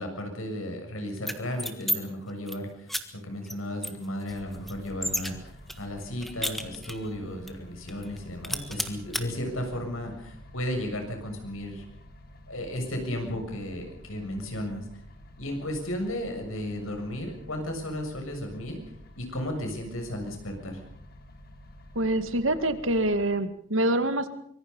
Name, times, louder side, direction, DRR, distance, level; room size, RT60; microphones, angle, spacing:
voice 1, 0.0-2.9 3.2-11.8 12.5-14.9 15.4-18.8 19.2-20.8, left 1 dB, 85° left, 4 dB, 7.2 m, -34 dB
sound 1, 1.2-2.0 2.3-2.6 2.9-3.0 3.5-3.6 3.8-5.3 5.7-7.1 7.5-7.6 7.9-8.2 8.4-9.2, equal, ahead, 1.6 m, -32 dB
sound 2, 4.3-23.2, left 1 dB, 50° left, 2.4 m, -49 dB
voice 2, 22.0-24.3, right 1 dB, 75° right, 10 dB, 2.1 m, -25 dB
25.0 x 23.5 x 5.5 m, 0.68 s
head